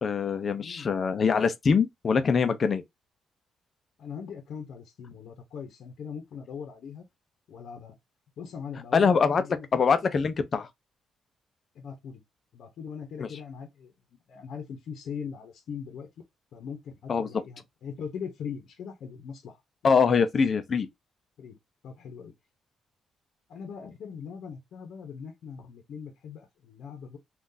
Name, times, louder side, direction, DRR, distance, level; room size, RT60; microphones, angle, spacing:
voice 1, 0.0-2.8 8.9-10.7 13.2-13.3 17.1-17.3 19.8-20.9, left 5 dB, 40° left, 0.5 m, -24 dB
voice 2, 0.5-0.9 4.0-7.0 7.5-8.0 8.4-9.8 11.7-12.2 12.5-13.9 14.3-16.1 16.5-19.6 21.4-21.6 21.8-22.3 23.5-27.2, left 6 dB, 70° left, 0.8 m, -40 dB
3.7 x 2.4 x 2.6 m
cardioid pair, 130°, 0 cm